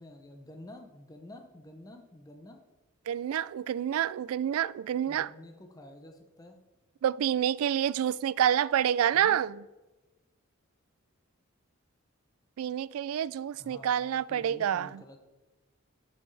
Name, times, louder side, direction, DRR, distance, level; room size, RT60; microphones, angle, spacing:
voice 1, 0.0-2.6 5.1-6.6 9.1-9.4 13.6-15.2, left 1 dB, 15° left, 0.7 m, -49 dB
voice 2, 3.1-5.3 7.0-9.6 12.6-15.0, right 9 dB, 90° right, 0.3 m, -28 dB
12.0 x 5.5 x 3.3 m
head